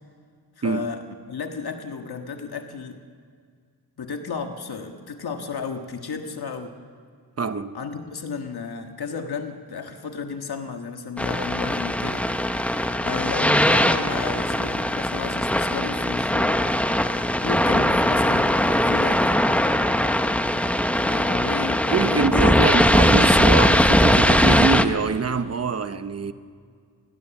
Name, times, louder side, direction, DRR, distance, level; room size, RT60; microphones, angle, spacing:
voice 1, 0.6-3.0 4.0-6.8 7.7-12.3 13.0-16.6 17.4-19.4 21.0-23.1, left 5 dB, 70° left, 1.6 m, -33 dB
voice 2, 7.4-7.8 17.7-17.8 21.9-26.3, right 5 dB, 40° right, 0.9 m, -24 dB
sound 1, 11.2-24.9, left 1 dB, 5° left, 0.7 m, -20 dB
27.0 x 20.5 x 7.1 m
wide cardioid pair, 165°, 39 cm